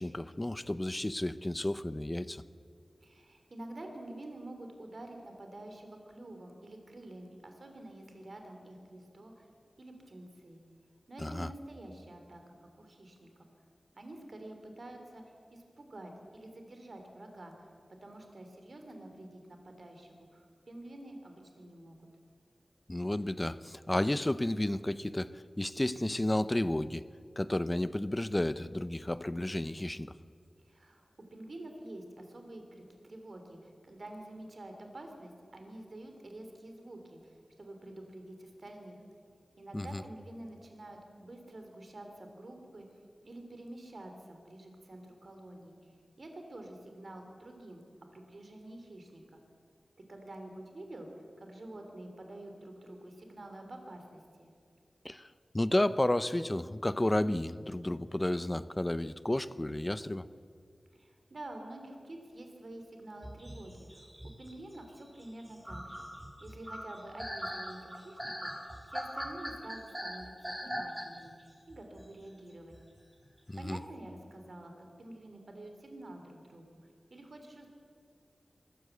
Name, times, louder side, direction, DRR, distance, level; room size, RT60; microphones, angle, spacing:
voice 1, 0.0-2.4 11.2-11.5 22.9-27.0 27.4-30.1 39.7-40.0 55.0-60.3 73.5-73.8, left 1 dB, 25° left, 14 dB, 0.7 m, -32 dB
voice 2, 3.0-9.5 9.8-10.6 11.1-13.3 14.0-17.7 18.0-22.0 30.6-39.0 39.6-45.8 46.2-47.8 48.1-49.4 50.1-51.1 51.4-54.5 60.9-66.1 66.4-72.7 73.6-76.7 77.1-77.7, right 1 dB, 65° right, 4 dB, 3.2 m, -48 dB
sound 1, 63.2-71.4 71.7-72.1 72.7-72.8 73.2-73.5, equal, 10° right, 3.9 m, -41 dB
23.0 x 14.5 x 8.1 m, 2.2 s
wide cardioid pair, 55°, 0 cm